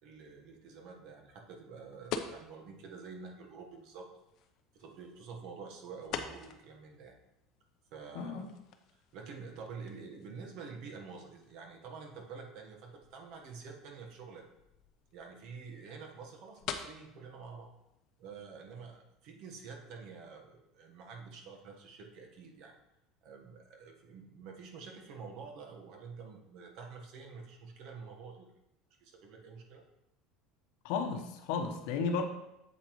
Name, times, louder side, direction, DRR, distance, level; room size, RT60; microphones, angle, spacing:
voice 1, 0.0-4.1 4.7-7.2 7.9-8.4 8.9-14.4 15.1-17.7 18.2-22.8 23.2-28.5 29.0-29.8, right 5 dB, 50° right, 2 dB, 1.3 m, -48 dB
sound 1, 2.0-19.0, left 7 dB, 45° left, 0.7 m, -48 dB
voice 2, 8.1-8.5 30.8-32.2, left 5 dB, 70° left, 6 dB, 1.0 m, -33 dB
8.2 x 7.5 x 3.1 m, 0.88 s
cardioid pair, 165°, 0 cm